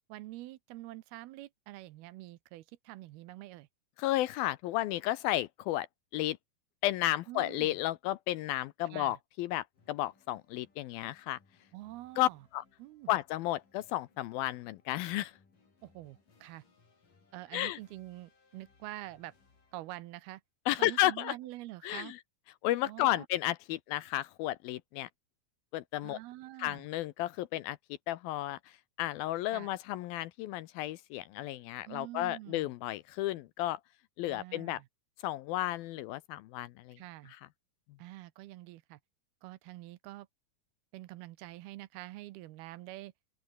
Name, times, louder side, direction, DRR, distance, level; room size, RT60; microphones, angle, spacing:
voice 1, 0.1-3.7 7.3-7.8 8.9-9.2 11.7-12.4 12.8-13.1 15.8-16.6 17.3-19.3 19.7-20.4 20.8-22.1 22.9-23.3 26.0-26.9 29.5-29.7 31.9-32.7 34.3-34.9 37.0-37.3 38.0-39.0 39.4-40.3 40.9-43.1, right 17 dB, 80° right, 2.7 m, -46 dB
voice 2, 4.0-5.9 6.1-6.4 6.8-11.4 12.2-12.6 13.1-15.3 17.5-17.8 20.7-21.4 21.8-22.2 22.6-25.1 25.7-26.2 26.6-27.8 28.1-33.8 34.2-34.8 35.2-37.0, left 15 dB, 80° left, 2.4 m, -33 dB
sound 1, 9.7-20.2, left 4 dB, 55° left, 7.8 m, -68 dB
open air
omnidirectional pair, 4.7 m